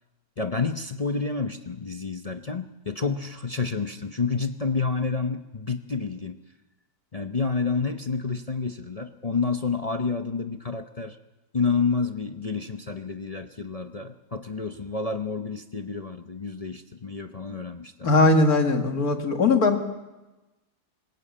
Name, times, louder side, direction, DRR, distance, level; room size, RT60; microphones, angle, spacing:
voice 1, 0.4-6.4 7.1-11.2 11.5-18.3, left 4 dB, 40° left, 6 dB, 0.5 m, -29 dB
voice 2, 18.0-19.8, left 3 dB, 60° left, 4 dB, 2.5 m, -20 dB
26.5 x 17.0 x 8.6 m, 1.1 s
omnidirectional pair, 1.8 m